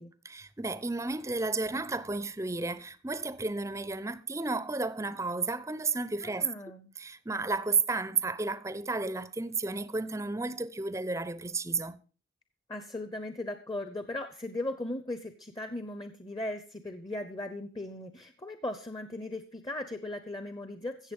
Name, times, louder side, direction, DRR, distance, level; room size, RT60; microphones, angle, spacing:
voice 1, 0.2-6.5 7.0-12.0, right 3 dB, 15° right, 0.6 m, -32 dB
voice 2, 6.2-6.9 12.7-21.1, left 1 dB, 20° left, 0.8 m, -38 dB
15.5 x 7.3 x 5.4 m
head